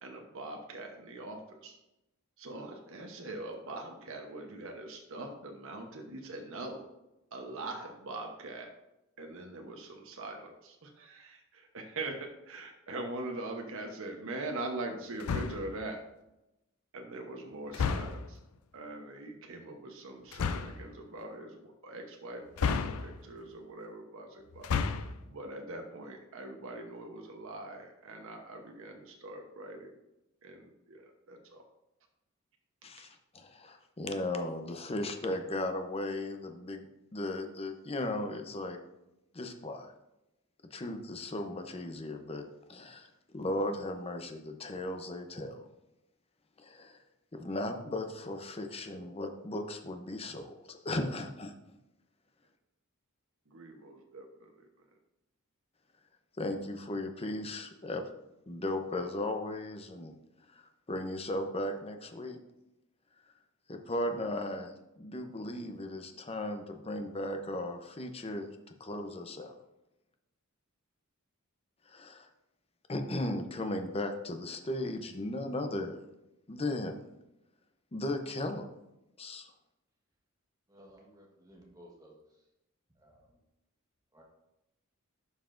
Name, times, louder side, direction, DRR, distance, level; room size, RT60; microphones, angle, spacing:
voice 1, 0.0-1.8 2.4-6.9 7.3-8.7 9.2-16.0 16.9-18.4 18.7-30.0 30.4-31.6 53.5-54.8, right 2 dB, 70° right, 3 dB, 1.0 m, -42 dB
sound 1, 15.2-15.8 17.7-18.4 20.3-20.8 22.6-23.4 24.5-25.2, left 5 dB, 85° left, 0.5 m, -32 dB
voice 2, 32.8-36.9 37.1-38.8 39.3-39.9 40.7-45.7 46.6-47.0 47.3-51.8 56.4-58.0 58.5-60.1 60.5-62.4 63.7-68.5 68.8-69.5 71.9-72.3 72.9-76.0 76.5-77.0 77.9-78.7 79.2-79.5, left 1 dB, 30° left, 6 dB, 0.7 m, -36 dB
voice 3, 80.7-82.2 82.9-83.4 84.1-84.2, equal, 15° right, -1 dB, 1.3 m, -57 dB
11.5 x 5.7 x 2.6 m, 0.92 s
head